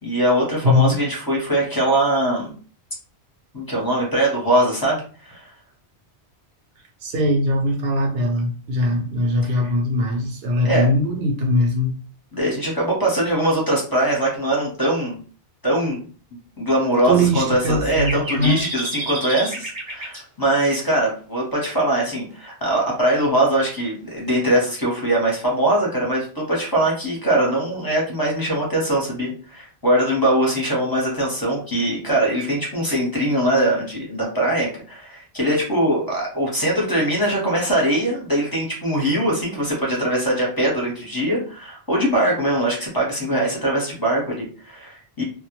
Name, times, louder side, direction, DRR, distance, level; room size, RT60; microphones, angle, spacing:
voice 1, 0.0-2.5 3.5-5.5 8.9-9.0 9.4-9.6 10.6-10.9 12.3-15.2 15.6-16.0 16.6-45.2, right 1 dB, 20° left, -3 dB, 0.7 m, -22 dB
voice 2, 0.6-1.0 7.0-11.9 17.0-18.7, left 1 dB, 65° right, 2 dB, 0.7 m, -21 dB
sound 1, 18.0-20.2, right 1 dB, 30° right, 0.6 m, -29 dB
2.1 x 2.1 x 2.9 m, 0.41 s
omnidirectional pair, 1.2 m